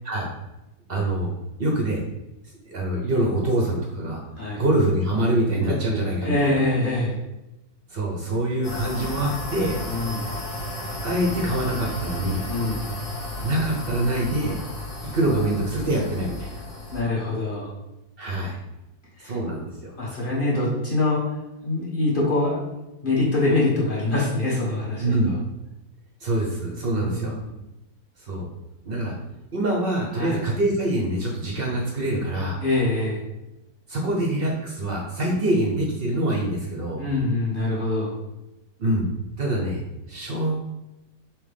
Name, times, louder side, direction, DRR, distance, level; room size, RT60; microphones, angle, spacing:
voice 1, 0.9-1.3 1.6-2.0 2.6-4.2 4.6-6.6 7.9-9.8 11.0-12.4 13.4-14.6 15.0-16.6 18.2-18.6 19.2-20.0 25.0-25.3 26.2-27.4 28.2-28.5 28.8-29.1 29.5-32.6 33.9-37.1 38.8-39.1 39.4-39.8 40.1-40.6, right 1 dB, 65° right, -1 dB, 0.5 m, -25 dB
voice 2, 6.2-7.2 9.8-10.3 12.5-12.9 16.9-17.7 19.2-19.4 20.0-21.2 21.6-22.6 23.0-25.4 26.9-27.4 30.1-30.4 32.6-33.3 37.0-38.2, left 2 dB, 40° left, -6 dB, 0.8 m, -24 dB
sound 1, 8.6-17.0, left 1 dB, 70° left, 1.7 m, -33 dB
5.9 x 2.1 x 3.3 m, 0.97 s
omnidirectional pair, 1.8 m